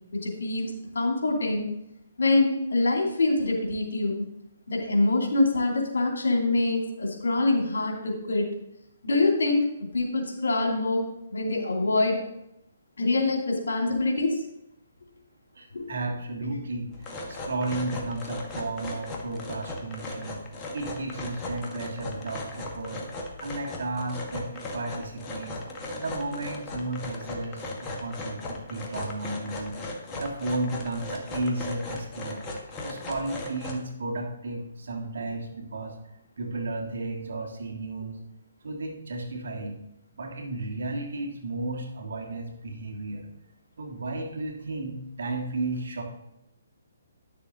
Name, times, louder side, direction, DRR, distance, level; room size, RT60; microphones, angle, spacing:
voice 1, 0.1-1.7 2.2-4.2 4.7-8.5 9.0-9.7 9.9-12.2 13.0-14.4 15.7-15.9, left 2 dB, 80° left, 1 dB, 2.8 m, -25 dB
voice 2, 15.6-20.4 20.7-23.0 23.4-25.6 25.9-29.8 30.1-32.4 32.8-36.0 36.4-38.2 38.6-39.8 40.1-43.3 43.8-46.0, right 2 dB, 70° right, 3 dB, 1.9 m, -33 dB
sound 1, 16.9-33.9, left 2 dB, 20° left, 1.5 m, -37 dB
10.5 x 6.9 x 3.9 m, 0.83 s
hypercardioid pair, 150°, 0 cm